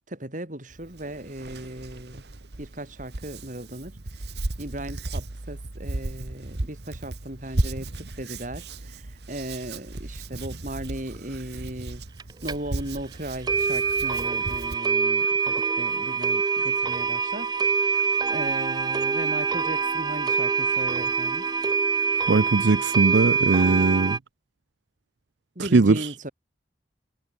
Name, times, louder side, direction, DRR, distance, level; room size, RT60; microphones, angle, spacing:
voice 1, 0.1-2.3 2.6-4.0 4.6-12.0 12.4-17.7 18.3-21.5 25.6-26.3, right 1 dB, 45° right, 3.9 m, -37 dB
Hands, 0.7-14.8, right 2 dB, 65° right, 1.4 m, -35 dB
sound 1, 12.2-12.3 12.5-12.6 13.0-13.1 13.5-24.2, right 5 dB, 25° right, 0.4 m, -25 dB
voice 2, 22.3-24.2 25.6-26.1, right 3 dB, 85° right, 0.6 m, -20 dB
head